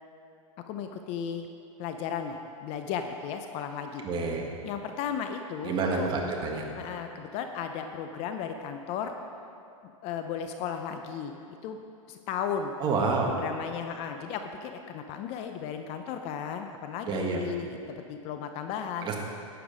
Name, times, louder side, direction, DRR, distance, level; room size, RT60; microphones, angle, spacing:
voice 1, 0.7-1.5 1.8-4.0 4.6-6.1 6.8-9.1 10.0-11.8 12.1-12.7 13.2-19.1, left 7 dB, 35° left, 6 dB, 0.6 m, -35 dB
voice 2, 4.0-4.5 5.6-6.7 12.8-13.3 17.0-17.4 19.0-19.1, right 4 dB, 25° right, 0 dB, 1.6 m, -28 dB
11.5 x 9.0 x 5.0 m, 2.6 s
hypercardioid pair, 140°, 17 cm